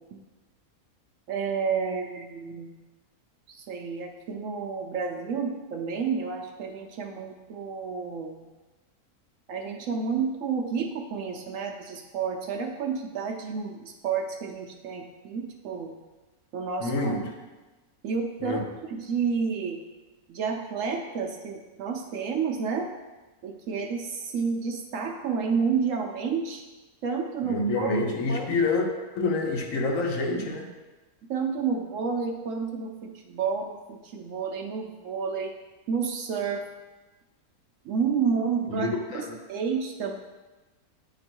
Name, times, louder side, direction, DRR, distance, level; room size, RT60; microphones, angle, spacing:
voice 1, 1.3-2.8 3.5-8.5 9.5-16.0 16.5-17.2 18.0-19.8 20.3-22.9 23.4-26.6 27.0-28.0 28.3-28.5 30.4-30.5 31.3-35.5 35.9-36.7 37.8-40.2, right 5 dB, 70° right, 3 dB, 0.8 m, -30 dB
voice 2, 16.8-17.3 18.4-18.6 27.4-28.9 29.1-30.7 38.7-39.4, left 3 dB, 65° left, 2 dB, 1.0 m, -27 dB
8.7 x 3.0 x 4.4 m, 1.2 s
omnidirectional pair, 1.6 m